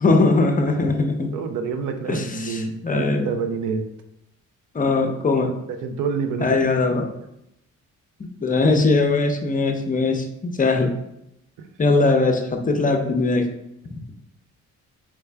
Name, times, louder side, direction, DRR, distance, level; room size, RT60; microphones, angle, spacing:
voice 1, 0.0-1.3 2.1-3.3 4.7-5.5 6.4-7.1 8.4-11.0 11.8-13.5, left 3 dB, 25° left, 5 dB, 0.6 m, -20 dB
voice 2, 1.3-3.8 5.5-6.7 11.6-11.7, right 5 dB, 90° right, 7 dB, 0.5 m, -28 dB
3.4 x 3.3 x 3.3 m, 0.83 s
cardioid pair, 90°, 30 cm